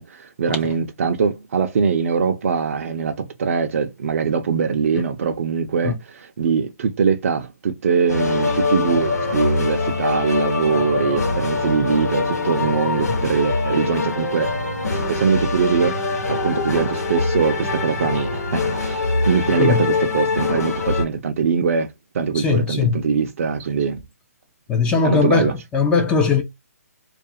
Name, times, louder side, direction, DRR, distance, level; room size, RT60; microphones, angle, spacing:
voice 1, 0.0-14.5 14.9-24.0 25.0-25.5, right 6 dB, 55° right, 0.5 m, -22 dB
sound 1, 8.1-21.1, left 3 dB, 80° left, 1.1 m, -23 dB
voice 2, 22.3-22.9 24.7-26.4, left 5 dB, 10° left, 0.4 m, -19 dB
2.4 x 2.3 x 2.6 m
hypercardioid pair, 145°, 9 cm